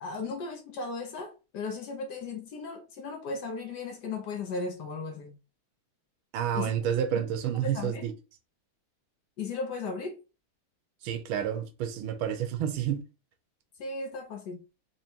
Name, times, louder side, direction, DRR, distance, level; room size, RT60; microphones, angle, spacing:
voice 1, 0.0-5.3 6.5-6.7 7.1-7.2 7.6-8.1 9.4-10.2 13.8-14.6, left 4 dB, 65° left, 1.1 m, -36 dB
voice 2, 6.3-8.1 11.0-13.0, right 9 dB, 85° right, 1.5 m, -29 dB
4.3 x 3.0 x 2.8 m
omnidirectional pair, 2.3 m